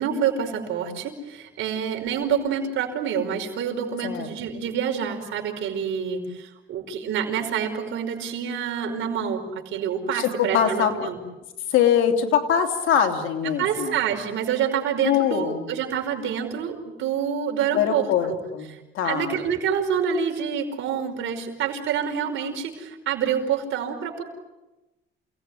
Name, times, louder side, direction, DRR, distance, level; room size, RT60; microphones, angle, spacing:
voice 1, 0.0-11.2 13.6-18.4 18.7-24.2, right 7 dB, 80° right, 4 dB, 5.3 m, -27 dB
voice 2, 10.1-11.1 11.7-14.0 15.0-15.7 17.7-19.4, left 8 dB, 90° left, 4 dB, 3.3 m, -23 dB
29.0 x 18.5 x 9.8 m, 1.0 s
cardioid pair, 90°, 20 cm